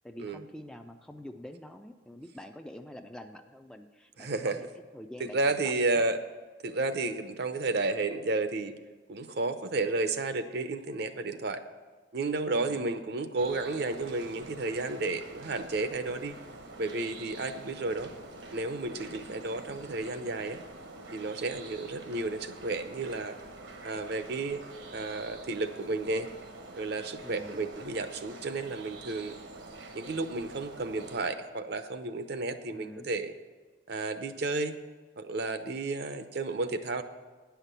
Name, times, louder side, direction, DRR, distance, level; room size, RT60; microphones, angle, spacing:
voice 1, 0.0-4.7 4.9-6.1 12.6-12.8 27.2-27.7 32.7-33.1, left 1 dB, 5° left, 5 dB, 0.4 m, -46 dB
voice 2, 4.2-4.7 5.3-6.2 6.6-8.8 9.1-11.6 12.1-16.4 16.8-18.1 18.5-20.6 21.1-23.4 23.8-24.6 24.9-26.3 26.7-29.4 29.9-33.3 33.9-34.7 35.2-37.0, right 3 dB, 55° right, 9 dB, 0.7 m, -32 dB
sound 1, 13.4-31.3, right 2 dB, 75° right, 1.1 m, -46 dB
9.8 x 5.8 x 8.1 m, 1.3 s
head